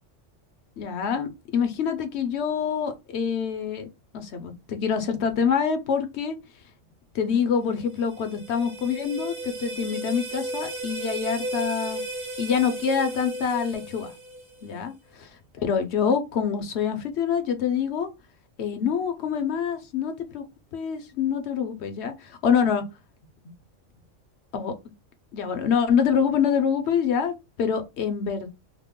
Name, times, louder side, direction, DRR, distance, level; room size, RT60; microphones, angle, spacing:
voice 1, 0.8-3.9 4.1-6.4 7.1-12.0 12.4-14.1 14.6-14.9 15.2-15.3 15.6-18.1 18.6-20.4 20.7-22.8 24.5-24.7 25.3-28.5, left 7 dB, 65° left, 0.8 m, -26 dB
sound 1, 7.7-14.8, right 2 dB, 50° right, 1.2 m, -35 dB
2.9 x 2.0 x 3.5 m
omnidirectional pair, 1.3 m